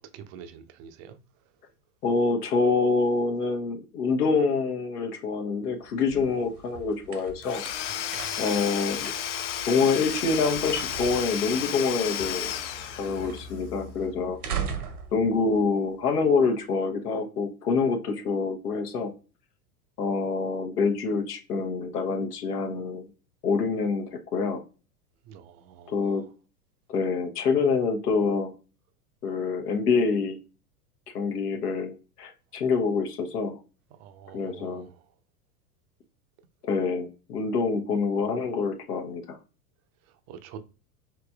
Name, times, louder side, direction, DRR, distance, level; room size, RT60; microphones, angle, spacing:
voice 1, 0.1-1.2 7.9-8.5 25.3-26.2 34.0-35.0 40.3-40.6, right 8 dB, 35° right, 0.5 m, -46 dB
voice 2, 2.0-7.6 8.4-9.1 9.7-12.5 13.0-14.4 15.1-19.1 20.0-23.1 23.4-24.6 25.9-26.2 26.9-28.5 29.2-30.4 31.1-33.6 34.3-34.9 36.6-39.4, left 4 dB, 75° left, 0.9 m, -26 dB
sound 1, 5.7-16.4, right 6 dB, 75° right, 1.0 m, -40 dB
Domestic sounds home sounds / Tools, 7.4-13.5, left 10 dB, 50° left, 0.6 m, -33 dB
4.9 x 3.0 x 2.3 m
hypercardioid pair, 95°, 47 cm